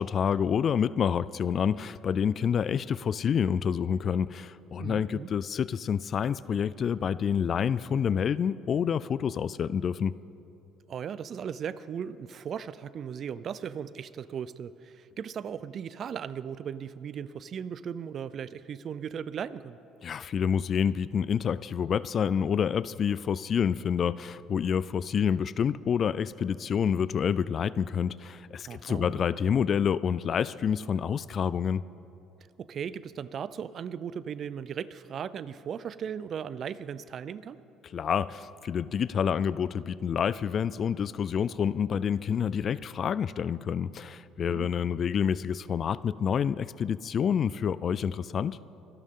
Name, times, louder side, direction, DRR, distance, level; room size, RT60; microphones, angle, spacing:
voice 1, 0.0-10.1 20.0-31.8 37.9-48.6, left 7 dB, 45° left, 18 dB, 0.3 m, -28 dB
voice 2, 4.8-5.3 10.9-19.8 28.6-29.2 32.6-37.6 44.5-44.7, right 8 dB, 45° right, 17 dB, 0.4 m, -37 dB
24.5 x 12.0 x 3.7 m, 2.8 s
cardioid pair, 110°, 0 cm